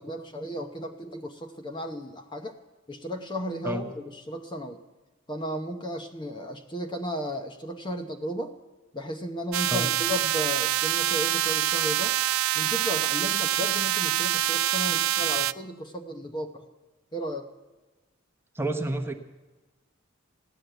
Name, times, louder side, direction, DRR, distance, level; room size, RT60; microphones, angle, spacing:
voice 1, 0.0-2.5 2.9-4.8 5.3-8.5 8.9-12.2 12.5-16.7 17.1-17.5, equal, 20° left, 6 dB, 0.8 m, -34 dB
sound 1, 9.5-15.5, right 14 dB, 85° right, 0.4 m, -25 dB
voice 2, 18.5-19.1, right 1 dB, 10° right, 5 dB, 1.0 m, -29 dB
16.0 x 10.5 x 7.9 m, 1.2 s
head